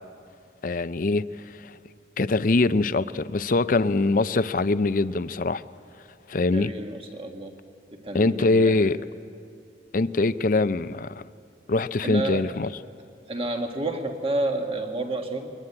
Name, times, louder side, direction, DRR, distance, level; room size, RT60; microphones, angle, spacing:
voice 1, 0.6-1.7 2.2-5.6 6.3-6.7 8.1-9.0 9.9-11.2 11.7-12.7, left 3 dB, 50° left, 0.5 m, -23 dB
voice 2, 6.5-7.5 7.9-8.9 12.0-12.5 13.3-15.5, right 2 dB, 30° right, 1.7 m, -30 dB
22.0 x 19.0 x 9.8 m
head